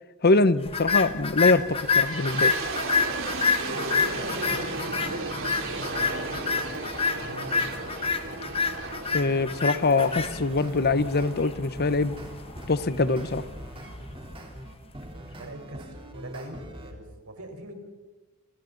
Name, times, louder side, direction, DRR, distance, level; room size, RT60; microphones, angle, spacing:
voice 1, 0.2-2.5 9.1-12.1 12.7-13.4, left 3 dB, 50° left, 14 dB, 1.0 m, -23 dB
sound 1, 0.7-15.0, left 4 dB, 25° left, 1.4 m, -29 dB
sound 2, 1.7-12.6, right 3 dB, 65° right, 3.7 m, -35 dB
voice 2, 3.7-6.8 7.1-7.7 15.3-17.7, right 1 dB, 85° right, 4 dB, 4.7 m, -42 dB
sound 3, 9.9-11.4 11.8-16.9, right 1 dB, 25° right, 3.6 m, -43 dB
29.5 x 29.5 x 4.1 m, 1.2 s
head